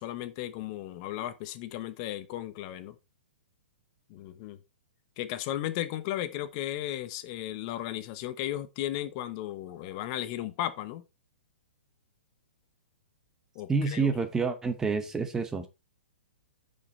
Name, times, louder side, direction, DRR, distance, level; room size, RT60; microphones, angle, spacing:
voice 1, 0.0-2.9 4.1-4.6 5.2-11.0 13.5-14.1, left 13 dB, 35° left, 0.8 m, -35 dB
voice 2, 13.7-15.7, right 4 dB, 10° right, 1.0 m, -28 dB
9.3 x 5.3 x 4.3 m
hypercardioid pair, 155°, 6 cm